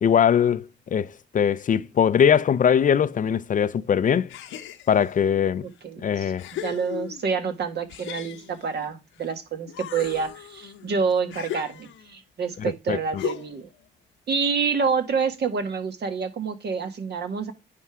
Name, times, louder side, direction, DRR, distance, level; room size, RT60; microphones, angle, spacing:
voice 1, 0.0-4.3 4.9-5.7 6.0-6.5 12.9-13.2, left 8 dB, 40° left, 0.5 m, -21 dB
sound 1, 4.3-5.2 5.8-5.9 6.4-7.4 7.9-9.3 9.7-12.2 13.2-13.7, left 11 dB, 80° left, 1.0 m, -37 dB
voice 2, 5.6-6.3 6.6-13.7 14.3-17.5, right 5 dB, 55° right, 1.6 m, -27 dB
9.5 x 3.6 x 4.7 m
cardioid pair, 90°, 20 cm